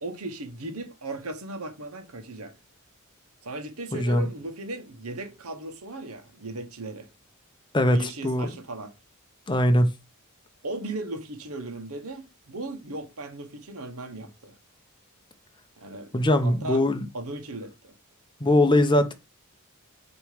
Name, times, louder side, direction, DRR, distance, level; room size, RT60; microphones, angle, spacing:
voice 1, 0.0-2.5 3.4-7.1 7.9-8.9 10.6-14.5 15.8-16.1 16.4-16.8 17.1-17.9, right 2 dB, 80° right, 1.3 m, -37 dB
voice 2, 3.9-4.3 7.7-8.5 9.5-9.9 16.1-17.1 18.4-19.1, left 1 dB, 20° left, 0.8 m, -21 dB
6.6 x 3.2 x 5.0 m
head